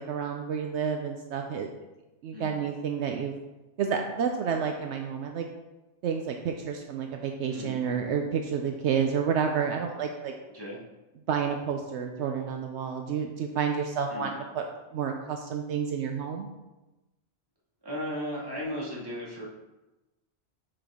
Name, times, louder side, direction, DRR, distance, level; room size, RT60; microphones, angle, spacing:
voice 1, 0.0-1.7 2.2-3.3 3.8-5.5 6.0-10.3 11.3-14.6 14.9-16.5, right 7 dB, 75° right, 3 dB, 0.9 m, -30 dB
voice 2, 2.3-2.6 7.5-7.8 10.5-10.8 14.1-14.4 17.8-19.5, equal, 20° right, -6 dB, 2.0 m, -36 dB
6.6 x 6.0 x 3.6 m, 1.1 s
omnidirectional pair, 1.2 m